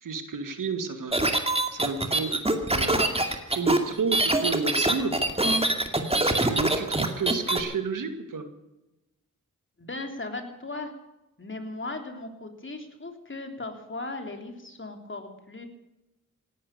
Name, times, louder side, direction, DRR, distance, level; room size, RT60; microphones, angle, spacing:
voice 1, 0.0-1.2 1.7-5.2 6.2-8.5, right 5 dB, 90° right, 8 dB, 2.1 m, -32 dB
sound 1, 1.1-7.6, right 2 dB, 20° right, 2.4 m, -24 dB
voice 2, 9.8-10.9 11.4-15.7, left 2 dB, 40° left, 5 dB, 3.4 m, -37 dB
17.0 x 12.0 x 6.9 m, 0.94 s
cardioid pair, 55°, 31 cm